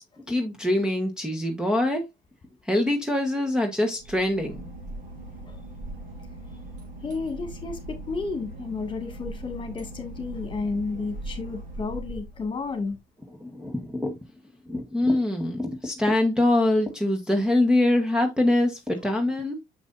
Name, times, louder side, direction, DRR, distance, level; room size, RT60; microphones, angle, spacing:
voice 1, 0.3-2.0 2.6-4.7 13.4-14.2 14.7-19.6, left 1 dB, 5° right, 1.1 m, -24 dB
Boat Water vehicle / Engine, 3.9-12.9, right 1 dB, 50° right, 4.3 m, -40 dB
voice 2, 7.0-13.0, left 4 dB, 30° left, 2.0 m, -32 dB
6.7 x 6.0 x 2.5 m
cardioid pair, 110°, 17 cm